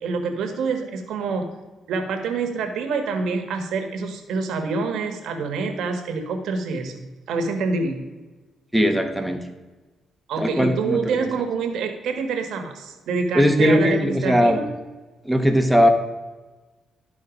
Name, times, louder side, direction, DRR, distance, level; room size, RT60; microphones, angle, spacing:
voice 1, 0.0-1.5 1.9-8.0 10.3-14.7, right 4 dB, 75° right, 5 dB, 1.4 m, -26 dB
voice 2, 8.7-9.4 10.4-11.1 13.3-14.6 15.3-15.9, equal, 5° right, 5 dB, 1.1 m, -19 dB
12.0 x 4.1 x 5.1 m, 1.2 s
cardioid pair, 90°, 0 cm